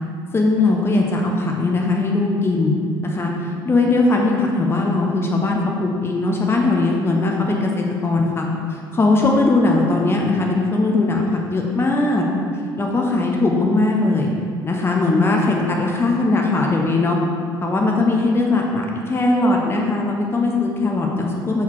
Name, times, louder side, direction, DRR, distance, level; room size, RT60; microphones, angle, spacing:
voice 1, 0.3-2.7 3.0-12.3 12.8-14.3 14.6-17.2 17.6-21.6, left 2 dB, 20° left, 0 dB, 0.8 m, -19 dB
7.1 x 3.9 x 4.6 m, 2.3 s
figure-of-eight pair, 60°, 13 cm